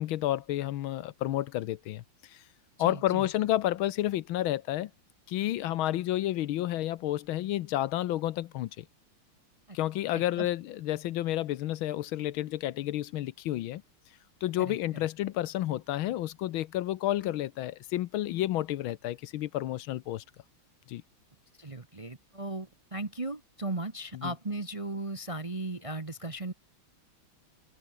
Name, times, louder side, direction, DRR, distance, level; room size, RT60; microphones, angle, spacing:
voice 1, 0.0-2.0 2.3-2.4 2.8-4.9 5.3-8.8 9.7-13.8 14.4-20.2 20.9-21.0 24.2-24.3, left 14 dB, 75° left, 1.5 m, -30 dB
voice 2, 2.8-3.3 9.7-9.8 10.1-10.5 14.6-14.8 21.6-26.5, right 2 dB, 25° right, 0.8 m, -37 dB
omnidirectional pair, 2.3 m